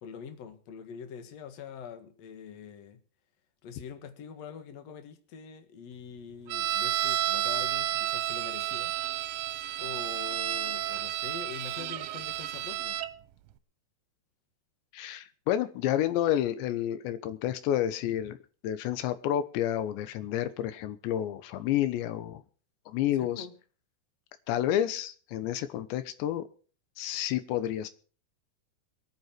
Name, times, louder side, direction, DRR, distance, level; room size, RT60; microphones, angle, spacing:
voice 1, 0.0-3.0 3.6-9.3 9.8-13.0 23.2-23.6, left 7 dB, 55° left, 8 dB, 2.1 m, -44 dB
sound 1, 6.5-13.1, right 13 dB, 85° right, 3.0 m, -31 dB
voice 2, 14.9-18.4 18.6-22.4 22.9-23.5 24.5-26.5 27.0-27.9, left 11 dB, 90° left, 12 dB, 3.3 m, -30 dB
22.5 x 9.6 x 4.5 m, 0.41 s
omnidirectional pair, 5.0 m